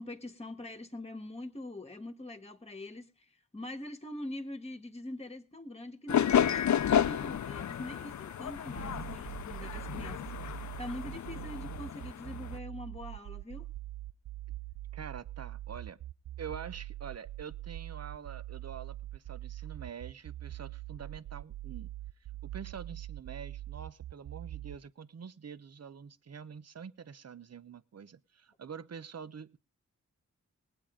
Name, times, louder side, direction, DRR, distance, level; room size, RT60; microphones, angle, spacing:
voice 1, 0.0-13.7, left 1 dB, 20° left, 1.4 m, -44 dB
sound 1, 6.1-12.6, left 9 dB, 65° left, 0.6 m, -31 dB
sound 2, 8.8-24.8, right 15 dB, 90° right, 0.6 m, -43 dB
voice 2, 14.9-16.0 16.4-21.9 22.4-29.6, right 7 dB, 55° right, 0.8 m, -46 dB
20.0 x 8.9 x 3.7 m
wide cardioid pair, 90°, 31 cm